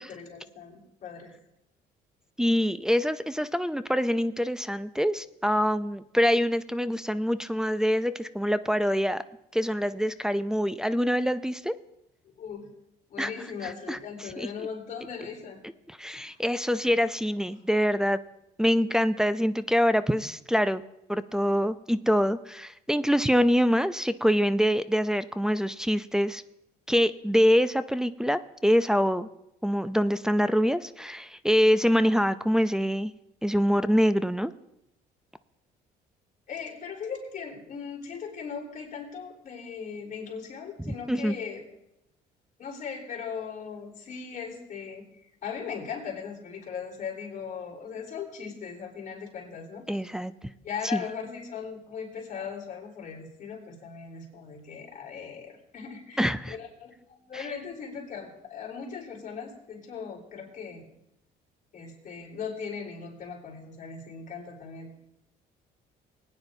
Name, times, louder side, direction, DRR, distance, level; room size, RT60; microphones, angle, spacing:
voice 1, 0.0-1.3 12.4-12.7 13.1-15.6 16.1-16.9 36.5-41.7 42.6-45.0 45.4-49.8 50.6-60.9 61.7-65.0, left 6 dB, 50° left, -2 dB, 3.7 m, -39 dB
voice 2, 2.4-9.2 9.5-11.8 13.2-13.3 13.6-14.7 15.9-18.2 18.6-20.8 21.1-26.4 26.9-29.3 29.6-33.1 33.4-34.5 40.8-41.3 49.9-50.3 50.9-51.0 56.2-56.6 57.3-57.5, equal, 5° right, 11 dB, 0.4 m, -25 dB
20.0 x 9.6 x 2.7 m, 0.84 s
cardioid pair, 110°, 17 cm